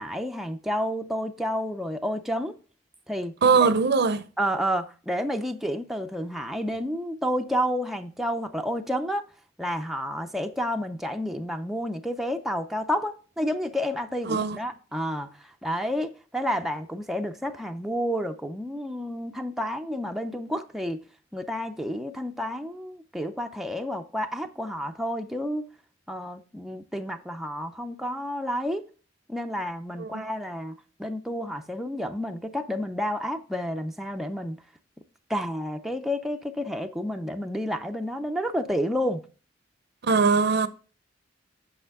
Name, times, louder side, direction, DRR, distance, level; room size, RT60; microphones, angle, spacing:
voice 1, 0.0-2.6 3.1-3.3 3.6-3.7 4.4-9.2 9.6-21.0 21.3-25.6 26.1-28.9 29.3-30.7 31.0-34.6 35.3-39.2, equal, ahead, 0.5 m, -30 dB
voice 2, 3.4-4.3 14.3-14.6 30.0-30.2 40.0-40.7, right 4 dB, 60° right, 0.6 m, -21 dB
8.0 x 6.1 x 3.6 m
head